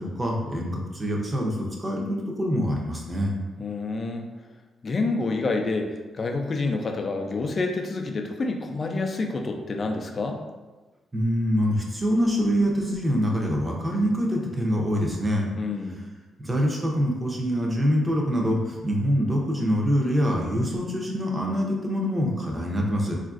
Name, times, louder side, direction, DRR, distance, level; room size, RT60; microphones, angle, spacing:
voice 1, 0.0-3.4 11.1-15.5 16.4-23.1, equal, 20° right, -1 dB, 0.6 m, -25 dB
voice 2, 3.6-4.2 4.8-10.4 15.6-16.0, left 3 dB, 40° left, 4 dB, 0.4 m, -28 dB
3.8 x 2.5 x 2.4 m, 1.2 s
cardioid pair, 95°, 0 cm